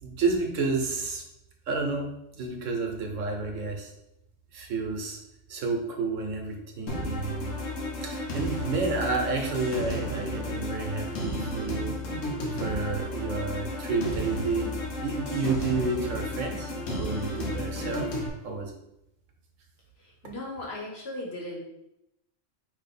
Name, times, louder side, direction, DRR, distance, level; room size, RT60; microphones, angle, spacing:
voice 1, 0.0-1.2 1.7-3.9 4.5-5.2 5.5-7.6 8.0-12.0 12.5-18.1 18.4-18.7, right 3 dB, 80° right, 3 dB, 1.2 m, -30 dB
sound 1, 6.9-18.3, equal, 80° left, 1.3 m, -33 dB
voice 2, 20.2-21.6, left 1 dB, 55° left, -2 dB, 1.4 m, -36 dB
4.6 x 2.8 x 4.1 m, 0.84 s
omnidirectional pair, 1.3 m